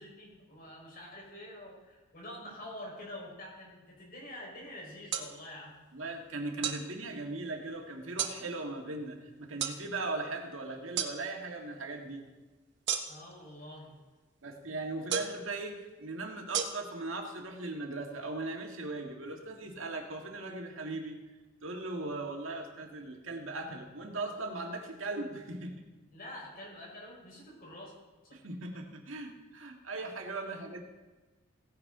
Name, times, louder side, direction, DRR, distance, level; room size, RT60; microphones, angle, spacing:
voice 1, 0.0-5.7 13.1-13.9 26.1-27.9 28.2-28.4 30.5-30.6, left 1 dB, 50° left, -2 dB, 4.6 m, -47 dB
sound 1, 5.1-5.3 6.6-6.8 8.2-8.4 9.6-9.8 11.0-11.1 12.9-13.3 15.1-15.4 16.5-16.6, right 8 dB, 65° right, 1.0 m, -32 dB
voice 2, 5.9-12.2 14.4-21.2 21.6-25.8 28.3-30.8, right 2 dB, 85° right, 2 dB, 1.8 m, -39 dB
16.0 x 10.0 x 3.8 m, 1.2 s
head